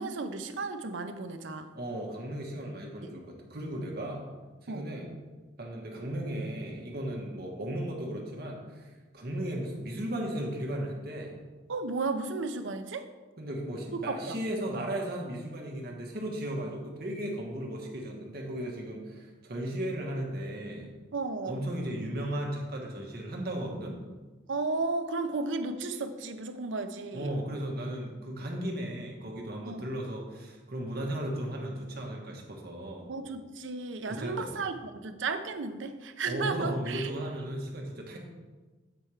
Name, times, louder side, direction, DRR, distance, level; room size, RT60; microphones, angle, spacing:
voice 1, 0.0-1.7 4.7-4.9 11.7-13.1 13.9-14.4 21.1-21.6 24.5-27.3 29.6-29.9 33.1-37.1, right 3 dB, 90° right, 8 dB, 0.6 m, -34 dB
voice 2, 1.7-4.2 4.6-5.1 5.6-11.4 13.4-20.9 21.5-24.0 27.1-33.1 34.1-34.5 36.3-38.2, right 1 dB, 55° right, 0 dB, 1.4 m, -36 dB
8.2 x 4.4 x 4.9 m, 1.3 s
head